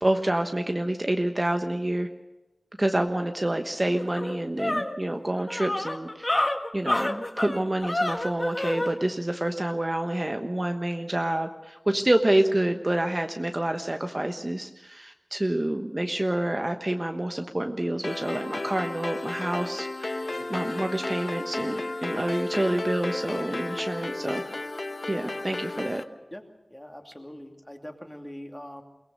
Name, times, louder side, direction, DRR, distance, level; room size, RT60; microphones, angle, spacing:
voice 1, 0.0-2.1 2.8-6.3 6.7-20.2 20.5-24.4 25.1-26.0, right 1 dB, 30° right, 5 dB, 1.2 m, -27 dB
sound 1, 3.5-3.6 3.9-8.9, left 1 dB, 35° left, 1.5 m, -28 dB
sound 2, 18.0-26.0, left 2 dB, 55° left, 0.9 m, -33 dB
voice 2, 26.7-28.8, equal, 15° left, 3 dB, 2.7 m, -43 dB
22.5 x 18.5 x 6.7 m, 1.0 s
wide cardioid pair, 65°, 0 cm